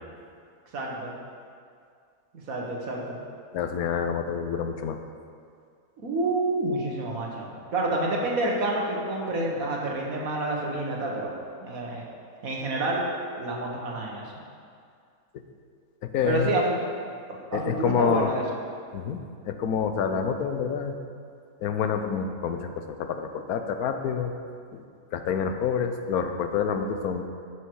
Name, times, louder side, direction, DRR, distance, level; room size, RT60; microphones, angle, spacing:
voice 1, 0.7-1.2 2.3-3.2 6.0-11.3 11.6-12.0 12.4-13.1 13.4-14.3 16.2-16.6 17.5-18.4, right 2 dB, 75° right, -2 dB, 1.9 m, -28 dB
voice 2, 3.5-5.0 16.0-16.5 17.5-18.3 18.9-19.2 19.4-21.0 21.6-24.3 24.7-24.8 25.1-27.2, left 7 dB, 90° left, 7 dB, 1.2 m, -27 dB
11.0 x 6.2 x 4.7 m, 2.2 s
omnidirectional pair, 1.5 m